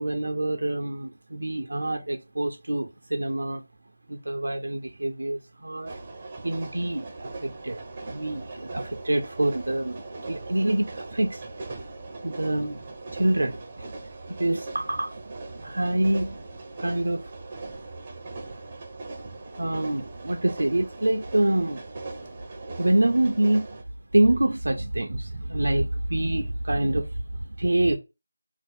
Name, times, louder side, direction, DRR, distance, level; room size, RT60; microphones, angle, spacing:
voice 1, 0.0-3.6 4.1-5.9 6.4-7.8 8.1-11.4 12.2-12.8 13.1-13.9 14.4-15.2 15.6-16.4 16.8-17.3 19.6-21.9 22.8-23.7 24.1-28.0, right 1 dB, 75° right, 0.5 m, -26 dB
sound 1, 5.8-23.8, right 3 dB, 25° right, 0.5 m, -40 dB
2.6 x 2.0 x 3.9 m
figure-of-eight pair, 170°, 0 cm